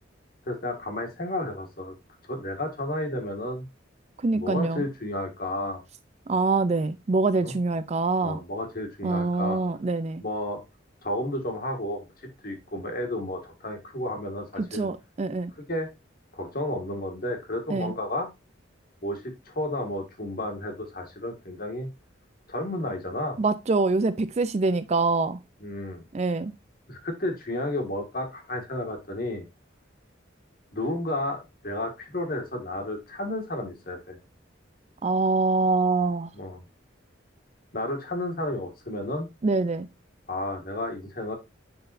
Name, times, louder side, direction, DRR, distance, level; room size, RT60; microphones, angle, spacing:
voice 1, 0.5-1.9 2.2-3.7 4.3-5.8 7.4-7.6 8.2-9.6 10.2-10.6 11.0-14.9 15.6-15.9 16.3-18.3 19.0-21.9 22.5-23.4 25.6-26.1 26.9-29.5 30.7-34.2 36.3-36.6 37.7-39.3 40.3-41.3, left 1 dB, 50° left, 1.8 m, -32 dB
voice 2, 4.2-4.8 6.3-8.4 9.0-10.2 14.6-15.5 17.7-17.9 23.4-25.4 26.1-26.5 35.0-36.3 39.4-39.9, right 3 dB, 35° right, 0.4 m, -25 dB
10.0 x 4.0 x 2.5 m
head